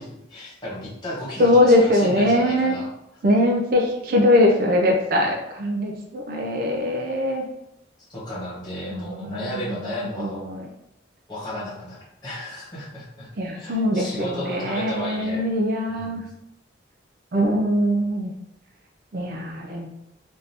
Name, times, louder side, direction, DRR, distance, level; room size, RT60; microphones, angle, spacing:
voice 1, 0.0-2.9 8.1-10.4 11.3-13.3 13.5-15.5 15.9-16.2, left 1 dB, 25° left, -7 dB, 1.3 m, -34 dB
voice 2, 1.4-2.8 3.2-7.4 8.9-9.8 10.2-10.6 13.4-16.2 17.3-18.3 19.1-19.9, left 1 dB, 50° right, 1 dB, 0.4 m, -21 dB
3.6 x 2.6 x 2.8 m, 0.83 s
head